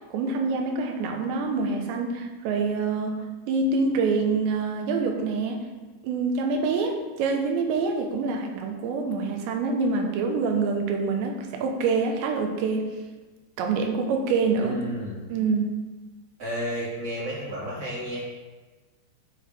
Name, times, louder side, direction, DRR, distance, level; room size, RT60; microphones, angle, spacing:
voice 1, 0.1-5.6 6.0-12.9 13.6-14.8 15.3-15.8, right 4 dB, 80° right, 3 dB, 3.1 m, -26 dB
voice 2, 14.5-15.2 16.4-18.2, equal, 20° right, -7 dB, 2.0 m, -32 dB
13.0 x 4.8 x 3.6 m, 1.3 s
omnidirectional pair, 5.3 m